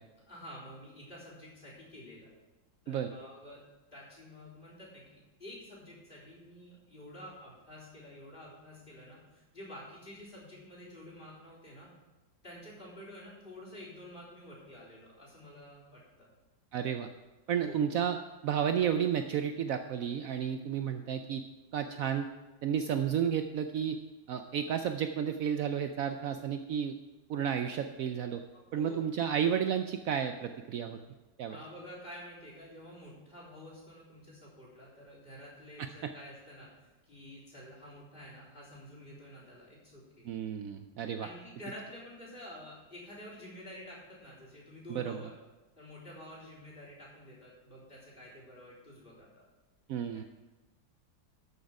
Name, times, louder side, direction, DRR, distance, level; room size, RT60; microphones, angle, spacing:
voice 1, 0.3-2.3 2.8-3.6 3.9-11.9 12.4-16.3 17.5-17.8 28.7-29.0 31.5-40.3 41.2-45.3 45.8-49.5 50.1-50.3, left 1 dB, 25° left, -5 dB, 4.0 m, -49 dB
voice 2, 16.7-17.1 17.5-18.2 18.4-21.4 21.7-22.3 22.6-24.0 24.3-27.0 27.3-28.4 28.7-31.0 31.4-31.6 35.8-35.9 40.2-41.3 44.9-45.2 49.9-50.2, right 8 dB, 85° right, 7 dB, 0.7 m, -32 dB
13.0 x 6.4 x 4.8 m, 1.1 s
omnidirectional pair, 2.0 m